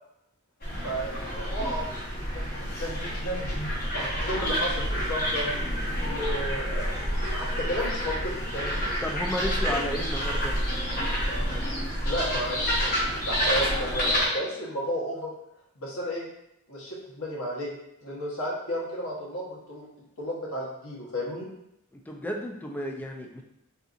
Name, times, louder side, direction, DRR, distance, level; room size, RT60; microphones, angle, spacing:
sound 1, 0.6-14.3, equal, 45° left, 0.8 m, -29 dB
voice 1, 0.8-3.7 3.9-5.7 6.0-6.9 7.3-8.9 12.0-15.3 15.8-16.3 16.7-17.7 18.0-19.9 20.2-21.5, equal, 70° left, -4 dB, 1.0 m, -33 dB
voice 2, 9.0-10.6 21.9-23.4, equal, 10° left, 1 dB, 0.3 m, -32 dB
3.7 x 2.7 x 2.5 m, 0.81 s
head